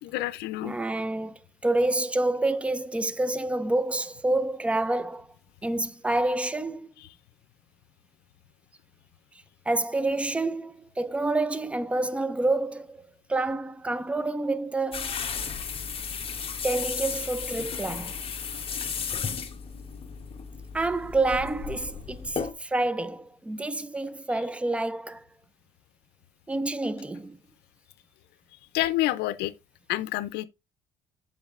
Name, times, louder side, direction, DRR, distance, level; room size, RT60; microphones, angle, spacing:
voice 1, 0.0-0.8 7.0-7.1 28.7-29.5 29.9-30.4, left 16 dB, 85° left, 0.5 m, -28 dB
voice 2, 0.6-5.3 5.6-6.9 9.7-13.0 13.3-15.2 16.6-18.1 20.7-25.2 26.5-27.4, right 2 dB, 5° right, 0.4 m, -28 dB
sound 1, 14.9-22.5, left 6 dB, 35° left, 1.0 m, -34 dB
7.8 x 5.2 x 2.4 m
cardioid pair, 110°, 17 cm